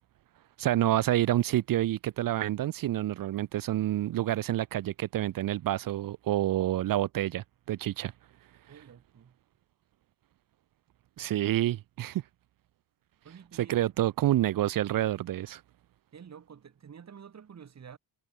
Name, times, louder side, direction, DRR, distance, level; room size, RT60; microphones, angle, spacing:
voice 1, 0.6-8.1 11.2-12.2 13.6-15.6, right 13 dB, 60° right, 0.6 m, -28 dB
voice 2, 8.7-9.4 13.2-13.8 16.1-18.0, right 7 dB, 45° right, 3.6 m, -50 dB
cardioid pair, 145°, 38 cm